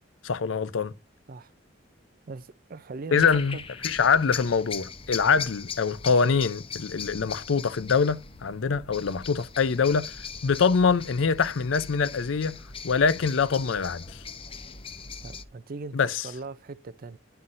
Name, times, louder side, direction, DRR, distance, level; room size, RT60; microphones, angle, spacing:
voice 1, 0.2-0.9 3.1-3.6 3.8-10.2 10.4-12.6 12.8-14.2 15.9-16.3, left 5 dB, 85° left, 0.6 m, -24 dB
voice 2, 2.3-3.3 3.5-3.6 15.2-16.0 16.2-17.2, right 3 dB, 50° right, 0.5 m, -39 dB
sound 1, 3.1-15.4, left 6 dB, 30° left, 0.7 m, -40 dB
11.0 x 5.7 x 2.6 m
head